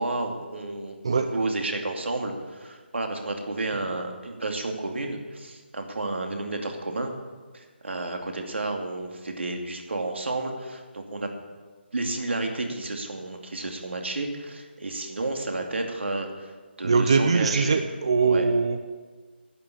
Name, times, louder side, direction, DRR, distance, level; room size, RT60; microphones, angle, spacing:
voice 1, 0.0-7.1 7.5-11.3 11.9-16.5 16.8-17.8 18.2-18.5, right 2 dB, 80° right, 3 dB, 2.6 m, -31 dB
voice 2, 16.8-18.8, right 4 dB, 30° right, 7 dB, 0.5 m, -22 dB
11.0 x 8.9 x 8.7 m, 1.4 s
hypercardioid pair, 180°, 6 cm